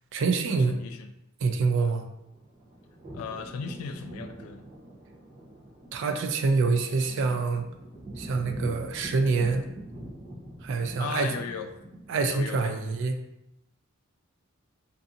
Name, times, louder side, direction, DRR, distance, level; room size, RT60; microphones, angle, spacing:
voice 1, 0.1-0.8 1.4-2.0 5.9-7.6 8.2-9.7 10.6-11.3 12.1-13.2, right 4 dB, 60° right, 7 dB, 0.3 m, -26 dB
voice 2, 0.7-1.1 3.1-4.7 11.0-11.7 12.2-12.8, left 5 dB, 85° left, 7 dB, 0.3 m, -36 dB
sound 1, 2.1-12.4, right 1 dB, 30° right, 0.7 m, -44 dB
2.6 x 2.6 x 2.4 m, 0.84 s
head